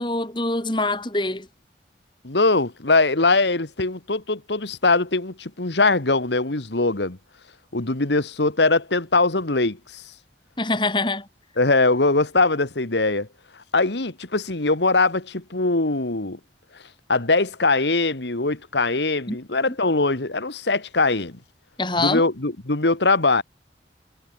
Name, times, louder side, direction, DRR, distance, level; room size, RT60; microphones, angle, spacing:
voice 1, 0.0-1.5 10.6-11.3 19.3-19.4 21.8-22.2, left 2 dB, 25° left, 3.2 m, -24 dB
voice 2, 2.2-7.2 7.7-10.0 11.6-13.3 13.7-16.4 17.1-21.4 22.0-23.4, left 3 dB, 85° left, 2.0 m, -21 dB
head